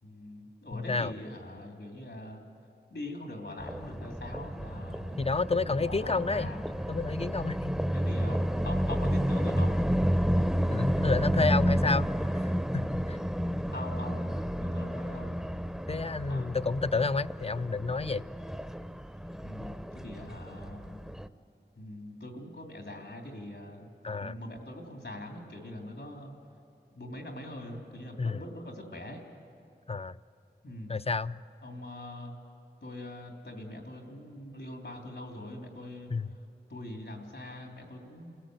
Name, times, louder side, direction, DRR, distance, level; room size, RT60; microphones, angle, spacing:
voice 1, 0.0-2.4 2.9-6.6 7.9-8.4 8.6-9.7 13.7-15.4 16.3-16.5 19.4-21.0 21.8-23.9 24.2-26.3 26.9-29.2 30.6-30.9 31.6-32.3 32.8-36.1 36.7-38.4, left 1 dB, 85° left, 1 dB, 3.4 m, -42 dB
voice 2, 0.7-1.1 5.2-6.5 6.9-7.7 10.7-12.1 12.7-13.2 15.9-18.3 24.0-24.3 28.2-28.4 29.9-30.2 30.9-31.4 36.1-36.3, left 4 dB, 35° left, 15 dB, 0.5 m, -30 dB
sound 1, 3.6-21.3, equal, 5° right, 0.7 m, -31 dB
29.0 x 17.5 x 8.0 m, 2.8 s
wide cardioid pair, 50°, 18 cm